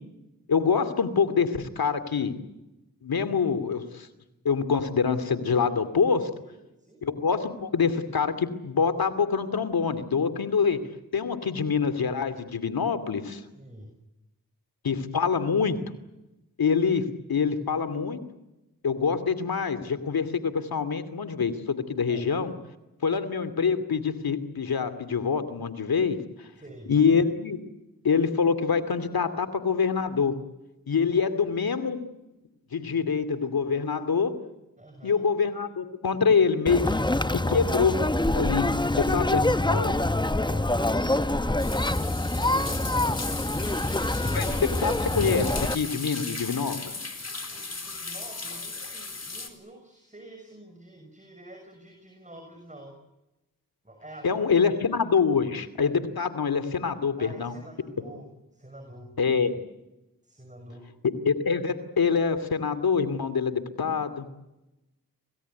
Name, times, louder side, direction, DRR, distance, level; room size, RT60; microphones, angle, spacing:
voice 1, 0.5-2.4 3.0-4.1 4.4-6.3 7.0-10.8 11.1-13.4 14.8-15.8 16.6-18.2 18.8-22.5 23.0-26.2 26.9-27.6 28.0-30.4 30.9-32.0 32.7-34.3 35.0-37.0 37.3-38.0 38.3-38.7 39.0-39.4 39.7-39.9 44.3-46.8 54.2-57.5 59.2-59.5 61.2-64.3, left 5 dB, 80° left, 12 dB, 2.6 m, -25 dB
voice 2, 6.4-7.0 13.5-13.9 22.1-22.3 26.6-26.9 31.2-31.3 34.8-35.2 39.0-44.0 47.5-53.0 53.8-54.5 57.2-59.1 60.2-60.9, right 1 dB, 20° right, 4 dB, 6.5 m, -47 dB
Conversation, 36.7-45.7, left 1 dB, 10° left, 1.1 m, -25 dB
sound 1, 41.6-49.5, left 3 dB, 45° left, 4.2 m, -37 dB
27.5 x 18.5 x 9.5 m, 0.96 s
cardioid pair, 40°, 36 cm